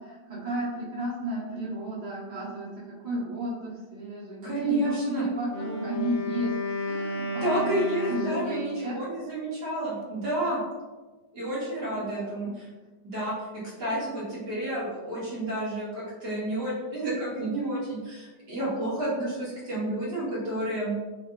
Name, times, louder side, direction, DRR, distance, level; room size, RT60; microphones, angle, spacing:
voice 1, 0.0-6.5 6.8-7.8 8.1-9.0 11.9-12.5, right 1 dB, 25° right, -9 dB, 1.3 m, -33 dB
voice 2, 4.4-5.2 7.4-10.6 11.3-12.5 13.0-20.9, right 1 dB, 65° right, -9 dB, 2.3 m, -30 dB
Wind instrument woodwind instrument, 5.4-8.9, left 2 dB, 70° left, 0.8 m, -32 dB
5.2 x 3.1 x 2.6 m, 1.3 s
omnidirectional pair, 1.9 m